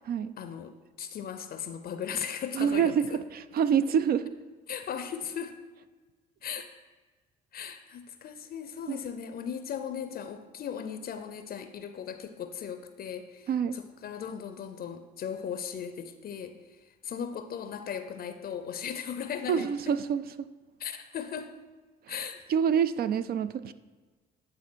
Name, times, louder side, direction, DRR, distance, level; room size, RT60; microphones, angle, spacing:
voice 1, 0.4-3.2 4.7-5.6 6.4-6.7 7.5-16.6 17.0-19.7 20.8-21.5 22.1-22.4, left 8 dB, 55° left, 9 dB, 0.5 m, -37 dB
voice 2, 2.5-4.3 8.9-9.0 13.5-13.8 19.5-20.5 22.1-22.2 22.5-23.7, right 7 dB, 50° right, 13 dB, 0.4 m, -27 dB
9.7 x 3.4 x 4.5 m, 1.4 s
supercardioid pair, 65°, 19 cm